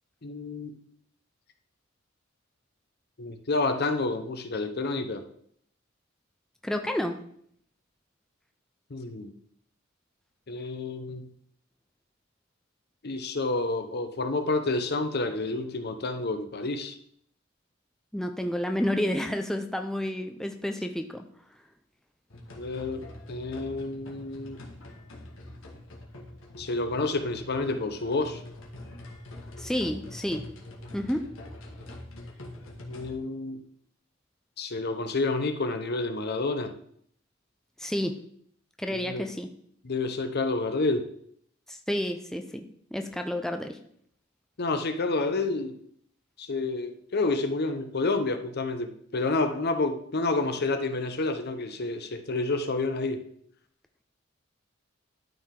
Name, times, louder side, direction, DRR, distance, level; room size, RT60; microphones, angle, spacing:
voice 1, 0.2-0.8 3.2-5.2 8.9-9.3 10.5-11.3 13.0-17.0 22.5-24.6 26.6-28.4 32.9-33.6 34.6-36.7 38.9-39.3 39.8-41.1 44.6-45.8 46.4-53.2, left 3 dB, 55° left, 8 dB, 0.8 m, -29 dB
voice 2, 6.6-7.2 18.1-21.2 29.6-30.5 30.9-31.3 37.8-38.2 38.8-39.5 41.7-43.8, left 1 dB, 5° left, 5 dB, 0.5 m, -30 dB
sound 1, 22.3-33.2, left 1 dB, 80° left, 1.7 m, -44 dB
12.0 x 4.7 x 3.7 m, 0.65 s
head